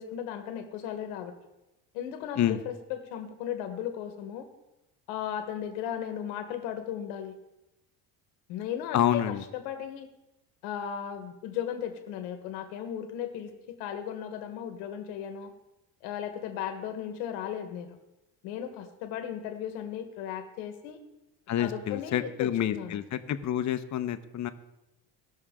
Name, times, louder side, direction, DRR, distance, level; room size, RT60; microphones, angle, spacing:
voice 1, 0.0-1.3 1.9-4.5 5.1-7.3 8.5-10.1 10.6-15.5 16.0-18.0 18.4-21.0 21.6-23.0, left 9 dB, 85° left, 7 dB, 1.3 m, -36 dB
voice 2, 8.9-9.4 21.5-24.5, left 11 dB, 45° left, 10 dB, 0.9 m, -28 dB
18.0 x 6.3 x 3.7 m, 0.95 s
supercardioid pair, 90°, 40 cm